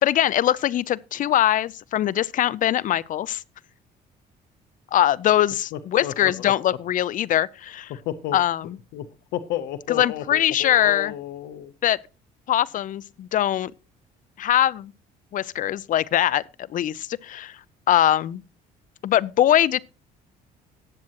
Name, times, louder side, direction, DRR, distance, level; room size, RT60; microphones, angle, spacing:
voice 1, 0.0-3.4 4.9-7.9 8.3-8.8 9.9-11.1 11.8-12.0 12.5-13.7 14.4-14.9 15.3-16.4 16.7-17.6 17.9-18.4 19.0-19.8, left 12 dB, 50° left, 0.5 m, -22 dB
voice 2, 5.7-6.3 8.1-8.4 8.9-9.1 9.3-11.7, left 11 dB, 85° left, 0.8 m, -32 dB
18.5 x 7.6 x 2.9 m
cardioid pair, 110°, 17 cm